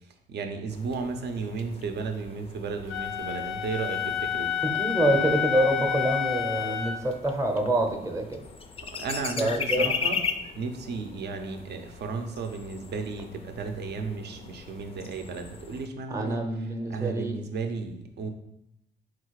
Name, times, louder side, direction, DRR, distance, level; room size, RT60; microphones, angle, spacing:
voice 1, 0.3-4.5 8.9-10.2 10.6-16.4 16.9-18.3, right 4 dB, 60° right, 6 dB, 0.6 m, -34 dB
sound 1, 0.7-15.9, left 6 dB, 30° left, 0.4 m, -38 dB
Wind instrument woodwind instrument, 2.9-7.0, left 9 dB, 90° left, 0.5 m, -29 dB
voice 2, 4.7-8.4 9.4-9.9 16.1-17.3, right 1 dB, 15° right, 4 dB, 0.7 m, -26 dB
3.9 x 2.4 x 4.6 m, 0.82 s
cardioid pair, 90°, 20 cm